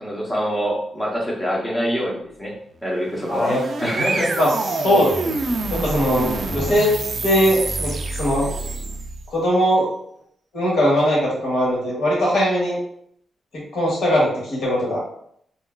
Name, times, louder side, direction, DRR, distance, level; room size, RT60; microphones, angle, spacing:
voice 1, 0.0-2.5 2.8-3.5 3.8-4.4, equal, 10° left, -3 dB, 0.6 m, -25 dB
sound 1, 3.0-9.3, right 3 dB, 40° right, 0.3 m, -26 dB
voice 2, 3.3-3.6 4.4-5.1 5.7-6.9 7.2-8.5 9.3-9.9 10.5-12.8 13.5-15.0, equal, 80° left, -5 dB, 1.2 m, -20 dB
3.7 x 2.3 x 2.2 m, 0.69 s
wide cardioid pair, 165°, 0 cm